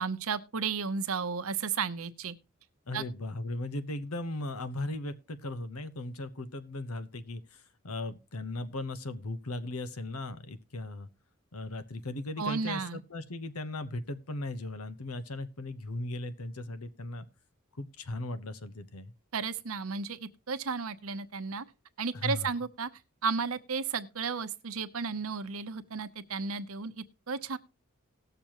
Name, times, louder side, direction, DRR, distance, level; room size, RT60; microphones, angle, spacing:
voice 1, 0.0-2.3 2.9-3.0 12.4-13.0 19.3-21.6 22.0-22.9 23.2-27.6, right 5 dB, 75° right, 0.8 m, -33 dB
voice 2, 2.9-11.1 11.5-17.3 17.8-19.1 22.1-22.5, left 2 dB, 85° left, 1.1 m, -37 dB
18.5 x 6.9 x 3.0 m
head